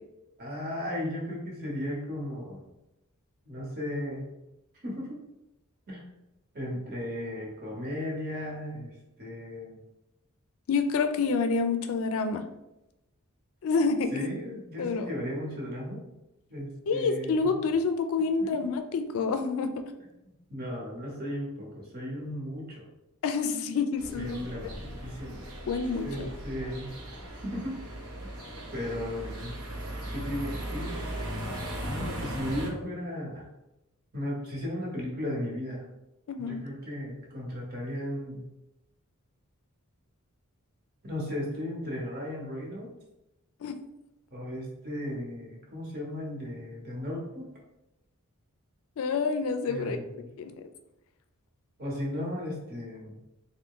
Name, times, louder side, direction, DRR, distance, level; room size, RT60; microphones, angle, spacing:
voice 1, 0.4-2.6 3.4-4.3 4.7-5.2 5.9-6.1 6.5-9.8 14.1-16.0 16.5-17.6 18.4-18.5 20.5-22.9 24.1-25.4 26.0-27.0 27.3-27.7 28.2-28.3 28.7-29.5 30.1-31.1 31.9-33.5 34.1-35.8 36.4-38.4 41.0-42.9 44.3-47.5 49.6-50.3 51.8-53.2, left 1 dB, 45° right, -2 dB, 1.1 m, -36 dB
voice 2, 10.7-12.4 13.6-14.3 14.8-15.1 16.9-19.7 23.2-24.4 25.7-26.3 36.3-36.6 43.6-43.8 49.0-50.0 50.4-50.5, left 4 dB, 65° left, 7 dB, 0.4 m, -28 dB
sound 1, 24.0-32.7, right 1 dB, 85° right, 0.9 m, -38 dB
3.4 x 2.1 x 3.7 m, 0.91 s
head